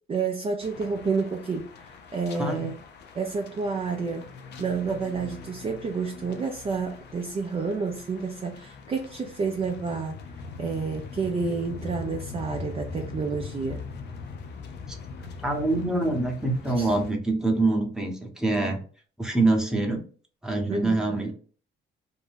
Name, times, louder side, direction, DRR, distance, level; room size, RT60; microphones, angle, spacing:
voice 1, 0.1-2.8 3.1-4.3 4.6-10.2 10.6-13.8 16.8-16.9 20.7-21.3, right 5 dB, 30° right, 2 dB, 0.4 m, -30 dB
sound 1, 0.6-17.1, left 4 dB, 60° left, 0.5 m, -41 dB
voice 2, 2.4-2.7 15.4-18.8 19.2-20.0 20.4-21.3, right 2 dB, 5° right, 2 dB, 0.8 m, -25 dB
2.6 x 2.2 x 3.3 m, 0.42 s
cardioid pair, 90°, 20 cm